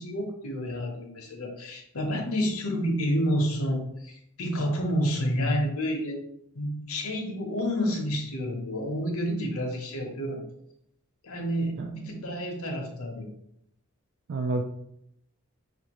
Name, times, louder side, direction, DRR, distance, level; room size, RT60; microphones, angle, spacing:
voice 1, 0.0-6.2 6.5-10.4 11.2-13.3, equal, 75° left, 2 dB, 0.8 m, -29 dB
voice 2, 11.8-12.2 14.3-14.6, right 3 dB, 55° right, 3 dB, 0.3 m, -30 dB
5.7 x 2.6 x 2.9 m, 0.77 s
head